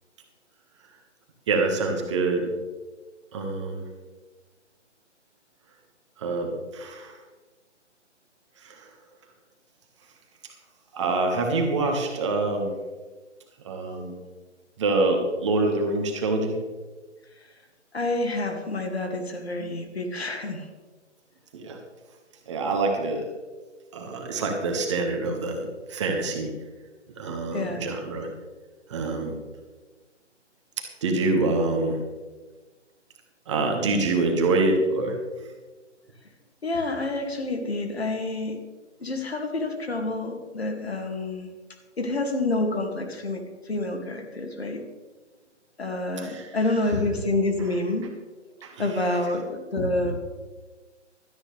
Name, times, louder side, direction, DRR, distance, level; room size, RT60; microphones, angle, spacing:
voice 1, 1.5-2.5 3.3-3.8 6.2-7.2 8.6-8.9 10.9-12.7 13.6-14.2 14.8-16.5 21.5-21.8 22.5-23.3 23.9-26.5 27.2-28.3 28.9-29.4 31.0-32.0 33.5-35.2 46.2-46.5 48.6-48.8, right 3 dB, 25° right, 2 dB, 1.6 m, -26 dB
voice 2, 17.9-20.7 27.5-27.9 36.6-38.6 39.0-41.5 42.0-44.8 45.8-48.1 48.8-50.2, left 2 dB, 60° left, 4 dB, 2.4 m, -28 dB
16.5 x 13.0 x 3.4 m, 1.3 s
figure-of-eight pair, 145°, 36 cm